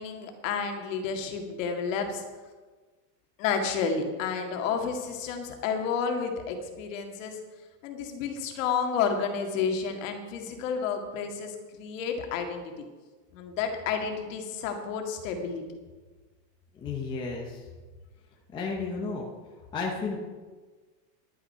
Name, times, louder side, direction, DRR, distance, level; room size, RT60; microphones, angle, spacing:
voice 1, 0.0-2.2 3.4-7.4 7.8-12.8 13.3-15.6, left 6 dB, 50° left, 4 dB, 2.0 m, -31 dB
voice 2, 16.7-17.6 18.5-19.2 19.7-20.2, left 4 dB, 10° left, -1 dB, 0.7 m, -32 dB
11.0 x 9.8 x 5.6 m, 1.3 s
supercardioid pair, 170°, 50 cm